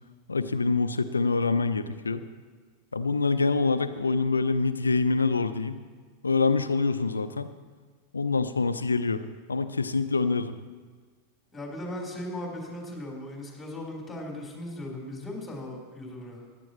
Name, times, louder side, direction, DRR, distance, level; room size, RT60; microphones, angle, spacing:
voice 1, 0.3-2.2 2.9-5.8 6.2-7.5 8.1-9.2 9.5-10.5, left 4 dB, 85° left, 11 dB, 0.5 m, -25 dB
voice 2, 11.5-16.4, left 1 dB, 10° left, -1 dB, 4.2 m, -37 dB
16.5 x 11.5 x 3.1 m, 1.5 s
figure-of-eight pair, 90°, 0 cm